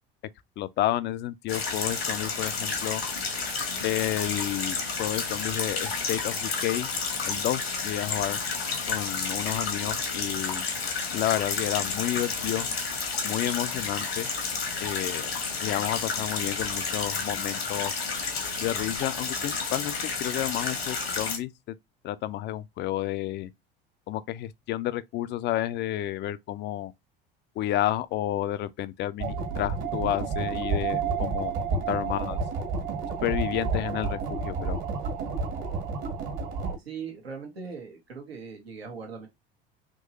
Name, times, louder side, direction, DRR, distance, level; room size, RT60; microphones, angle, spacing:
voice 1, 0.6-3.0 3.8-6.9 7.3-8.4 8.9-10.6 11.1-12.7 13.2-14.3 14.8-17.9 18.6-21.5 22.0-23.5 24.1-26.9 27.6-32.4 33.2-34.8, left 13 dB, 35° left, 0.4 m, -31 dB
sound 1, 1.5-21.4, left 4 dB, 85° left, 1.2 m, -31 dB
sound 2, 29.2-36.8, right 5 dB, 55° right, 1.7 m, -30 dB
voice 2, 36.8-39.3, right 5 dB, 85° right, 1.2 m, -40 dB
3.7 x 2.9 x 2.7 m
figure-of-eight pair, 70°, 30 cm